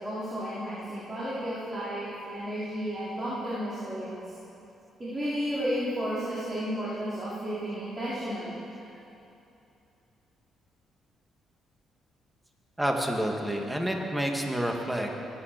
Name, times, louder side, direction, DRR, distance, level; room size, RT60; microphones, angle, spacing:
voice 1, 0.0-4.3 5.0-8.6, equal, 25° right, -10 dB, 4.2 m, -33 dB
voice 2, 12.8-15.1, right 1 dB, 10° right, 1 dB, 2.2 m, -29 dB
22.0 x 9.4 x 6.9 m, 2.8 s
cardioid pair, 90°, 0 cm